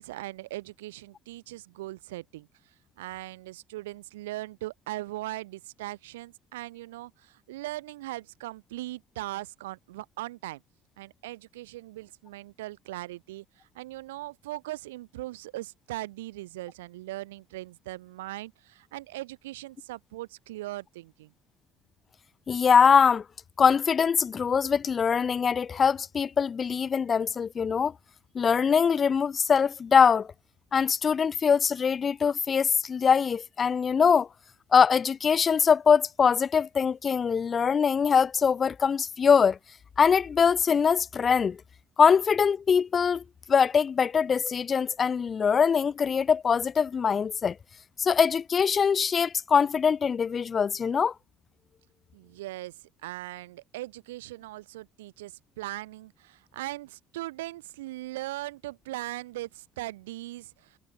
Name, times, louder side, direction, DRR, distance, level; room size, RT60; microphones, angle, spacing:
voice 1, 0.0-10.6 11.0-21.3 52.1-60.8, right 17 dB, 75° right, 5.5 m, -39 dB
voice 2, 22.5-23.2 23.6-27.9 28.3-30.3 30.7-34.3 34.7-39.6 40.0-41.6 42.0-43.2 43.5-47.6 48.0-51.1, left 6 dB, 35° left, 0.9 m, -23 dB
figure-of-eight pair, 60°, 0 cm